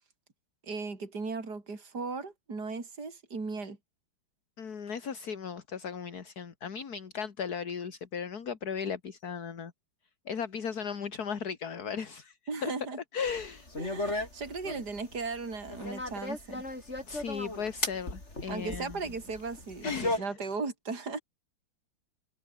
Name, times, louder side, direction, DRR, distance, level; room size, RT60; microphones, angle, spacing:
voice 1, 0.6-3.8 12.5-13.0 13.8-16.6 18.5-21.2, right 4 dB, 50° right, 4.6 m, -37 dB
voice 2, 4.6-9.7 10.3-12.7 13.1-13.7 17.1-19.0 19.8-20.3, left 6 dB, 50° left, 2.3 m, -36 dB
sound 1, 13.3-20.2, left 2 dB, 30° left, 6.4 m, -36 dB
omnidirectional pair, 2.3 m